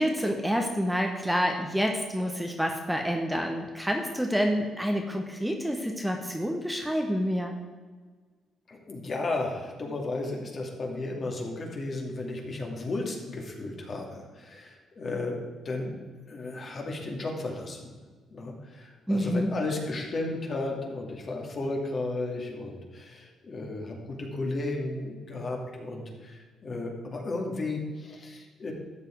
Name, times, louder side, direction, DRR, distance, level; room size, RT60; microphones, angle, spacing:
voice 1, 0.0-7.5 19.1-19.5, equal, 5° right, 2 dB, 1.2 m, -28 dB
voice 2, 8.7-15.3 15.6-15.9 16.3-17.9 18.3-28.7, left 2 dB, 45° left, 0 dB, 2.6 m, -34 dB
13.0 x 7.5 x 4.8 m, 1.4 s
cardioid pair, 90°, 0 cm